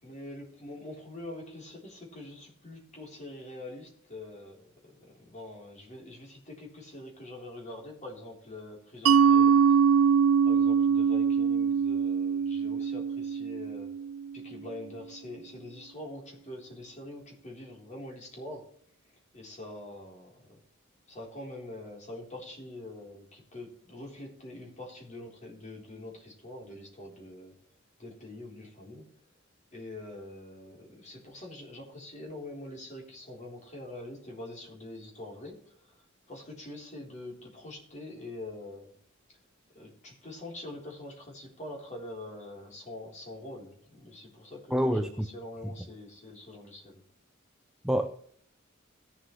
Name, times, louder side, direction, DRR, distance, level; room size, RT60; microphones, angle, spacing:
voice 1, 0.0-9.8 10.4-14.0 14.3-18.8 19.3-20.6 21.1-27.6 28.0-29.1 29.7-38.9 39.7-47.0, left 1 dB, 35° left, -1 dB, 3.7 m, -44 dB
Mallet percussion, 9.1-14.4, right 6 dB, 70° right, 0.3 m, -23 dB
voice 2, 44.7-45.3 47.8-48.1, equal, 5° right, 6 dB, 0.5 m, -26 dB
17.5 x 7.7 x 3.2 m, 0.63 s
head